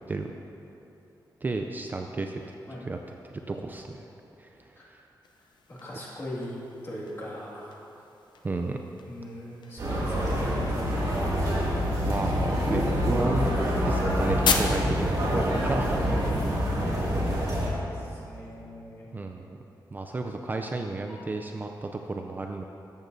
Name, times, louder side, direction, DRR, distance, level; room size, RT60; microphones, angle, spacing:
voice 1, 1.4-2.4 2.8-3.0 3.5-4.1 4.4-5.0 8.4-8.8 12.1-16.2 16.5-17.1 19.1-19.6 19.9-22.6, right 3 dB, 25° right, 4 dB, 0.3 m, -33 dB
sound 1, 5.2-17.0, left 5 dB, 75° left, 0.6 m, -37 dB
voice 2, 5.7-7.8 9.0-11.4 11.8-12.1 14.6-15.5 16.7-19.0, equal, 30° left, -6 dB, 2.0 m, -40 dB
sound 2, 9.8-17.7, equal, 50° right, 2.2 m, -26 dB
sound 3, 12.4-19.0 20.5-21.3, equal, 5° left, 1.1 m, -42 dB
14.0 x 8.1 x 2.6 m, 3.0 s
wide cardioid pair, 150°, 8 cm